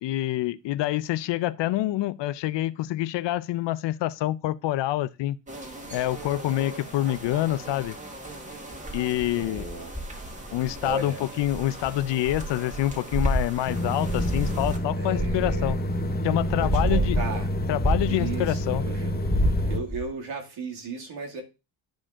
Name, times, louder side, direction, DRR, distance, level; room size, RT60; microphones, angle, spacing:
voice 1, 0.0-5.4 5.9-8.0 8.9-9.7 10.5-15.8 16.2-17.2 17.7-18.8, left 15 dB, 70° left, 0.6 m, -27 dB
sound 1, 5.5-14.8, right 1 dB, 15° right, 1.5 m, -41 dB
sound 2, 8.7-11.0 11.4-16.0 16.4-18.7 19.1-20.1, right 1 dB, ahead, 2.2 m, -29 dB
voice 2, 9.3-9.9 10.4-10.6 10.8-11.2 15.0-15.8 16.5-17.5 18.0-19.2 19.7-21.4, right 3 dB, 75° right, 2.2 m, -35 dB
sound 3, 13.7-19.8, equal, 20° left, 0.8 m, -28 dB
10.5 x 5.1 x 3.6 m
cardioid pair, 135°, 45 cm